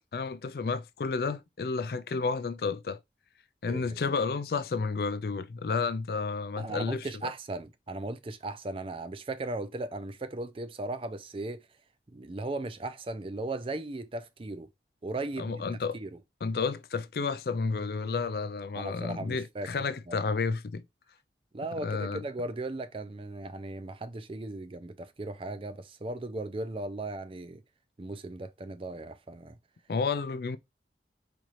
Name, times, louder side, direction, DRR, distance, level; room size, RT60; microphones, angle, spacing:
voice 1, 0.0-3.0 3.6-7.3 15.4-16.0 16.4-20.8 21.8-22.2 29.9-30.6, left 4 dB, 55° left, 0.4 m, -31 dB
voice 2, 3.7-4.0 6.6-11.6 12.1-14.7 15.0-15.6 15.9-16.2 18.7-20.2 21.5-27.6 28.0-29.6, right 2 dB, 30° right, 0.4 m, -37 dB
4.2 x 3.2 x 2.5 m
head